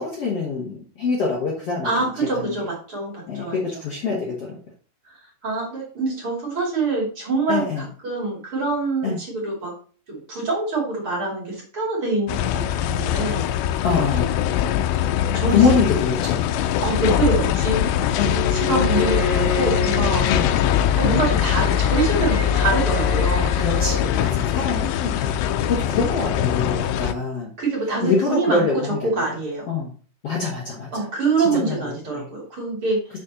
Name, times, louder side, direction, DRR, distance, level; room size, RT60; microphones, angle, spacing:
voice 1, 0.0-2.5 3.3-4.6 7.5-7.9 9.0-9.2 13.8-14.3 15.5-16.4 18.1-18.4 20.3-20.5 23.5-27.5 28.0-29.2 29.7-29.9 30.2-31.0 31.5-32.3, left 4 dB, 60° left, -3 dB, 1.5 m, -24 dB
voice 2, 1.8-3.5 5.4-9.7 10.1-13.5 15.3-15.6 16.8-17.8 18.2-20.3 21.0-23.5 27.6-28.7 29.0-29.7 30.9-33.0, right 3 dB, 35° right, -2 dB, 2.9 m, -25 dB
sound 1, 12.3-27.1, left 10 dB, 85° left, 2.8 m, -22 dB
Bowed string instrument, 18.6-24.1, left 2 dB, 40° left, 2.1 m, -30 dB
6.5 x 6.4 x 4.1 m, 0.41 s
omnidirectional pair, 5.0 m